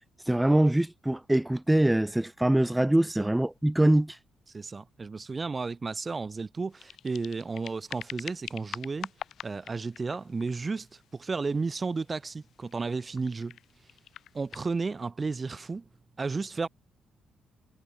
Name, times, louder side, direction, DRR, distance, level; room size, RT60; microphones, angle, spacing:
voice 1, 0.3-4.2, right 1 dB, 10° right, 1.3 m, -23 dB
voice 2, 4.5-9.1 9.4-10.9 11.1-13.6 14.3-15.8 16.2-16.7, right 4 dB, 30° right, 3.1 m, -33 dB
sound 1, 6.7-14.6, left 10 dB, 70° left, 7.2 m, -46 dB
cardioid pair, 90°, 0 cm